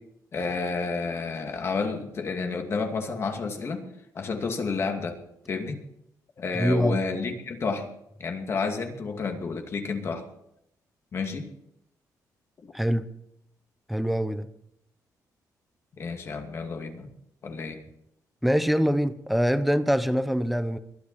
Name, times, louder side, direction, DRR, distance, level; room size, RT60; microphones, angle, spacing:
voice 1, 0.3-3.8 4.1-5.2 5.5-5.8 6.4-7.9 8.2-10.3 11.1-11.5 12.6-12.7 15.9-17.1 17.4-17.8, left 4 dB, 40° left, 4 dB, 2.4 m, -30 dB
voice 2, 6.5-7.0 12.7-13.1 13.9-14.5 18.4-20.8, equal, ahead, 12 dB, 0.9 m, -24 dB
22.0 x 12.0 x 4.3 m, 0.76 s
cardioid pair, 155°, 7 cm